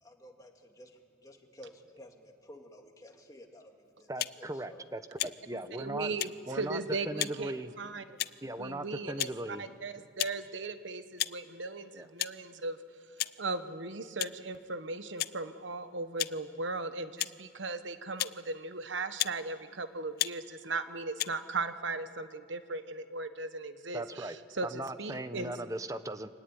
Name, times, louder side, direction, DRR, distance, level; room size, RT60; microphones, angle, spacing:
voice 1, 0.0-3.7 4.0-4.1 4.4-4.8, left 1 dB, 20° left, 2 dB, 2.2 m, -53 dB
voice 2, 4.1-6.1 6.5-6.8 7.1-7.7 8.4-9.7 11.9-12.1 23.9-24.4 24.6-26.3, right 1 dB, 15° right, 11 dB, 0.8 m, -38 dB
sound 1, 4.2-4.4 5.2-5.4 6.2-6.3 7.2-7.4 8.2-8.5 9.2-9.3 10.2-10.4 11.2-11.4 12.2-12.3 13.2-13.4 14.2-14.4 15.2-15.3 16.2-16.3 17.2-17.3 18.2-18.4 19.2-19.4 20.2-20.3 21.2-21.3, left 14 dB, 50° left, 0.5 m, -33 dB
voice 3, 5.8-7.5 7.8-8.2 8.6-12.8 13.4-25.5, right 3 dB, 75° right, 10 dB, 1.1 m, -37 dB
25.0 x 17.5 x 9.8 m, 2.5 s
head